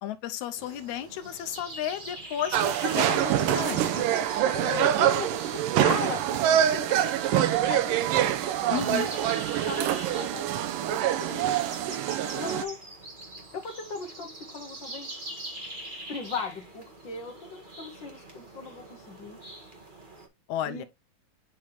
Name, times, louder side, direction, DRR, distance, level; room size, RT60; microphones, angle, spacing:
voice 1, 0.0-4.1 8.7-9.1 20.5-20.8, left 10 dB, 75° left, 1.9 m, -33 dB
sound 1, 0.6-20.3, right 1 dB, 45° right, 0.6 m, -44 dB
sound 2, 2.5-12.6, right 11 dB, 80° right, 2.4 m, -25 dB
voice 2, 4.5-8.4 9.1-11.8 12.2-12.8 13.5-15.1 16.1-19.4 20.6-20.8, left 4 dB, 50° left, 1.5 m, -38 dB
8.5 x 4.2 x 3.4 m
omnidirectional pair, 3.8 m